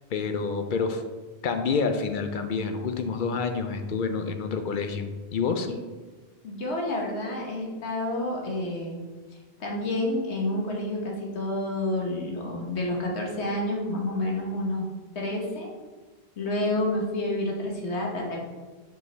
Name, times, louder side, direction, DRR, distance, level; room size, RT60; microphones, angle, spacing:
voice 1, 0.1-1.0 1.4-5.7, left 5 dB, 60° left, 7 dB, 0.6 m, -28 dB
voice 2, 6.4-9.0 9.6-14.9 15.1-15.7 16.4-18.4, left 1 dB, 80° left, -1 dB, 1.4 m, -29 dB
5.6 x 5.2 x 3.3 m, 1.3 s
omnidirectional pair, 1.1 m